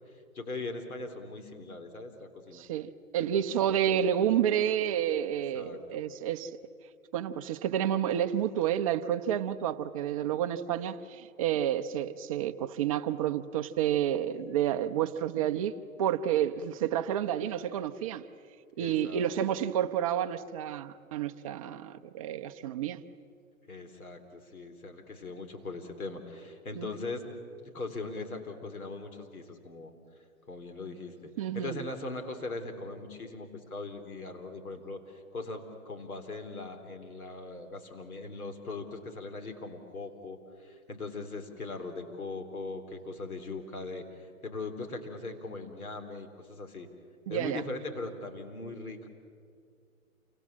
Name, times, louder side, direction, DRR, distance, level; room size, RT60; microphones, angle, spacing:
voice 1, 0.3-2.6 3.2-3.4 5.3-6.1 18.8-19.3 23.7-27.2 27.6-29.9 30.5-46.9 47.3-49.1, left 3 dB, 85° left, 3.9 m, -40 dB
voice 2, 2.5-6.5 7.1-15.7 16.0-18.2 18.8-23.0 26.8-26.9 31.4-31.8 47.3-47.6, right 10 dB, 25° right, 0.6 m, -30 dB
28.5 x 25.0 x 7.4 m
hypercardioid pair, 145°, 43 cm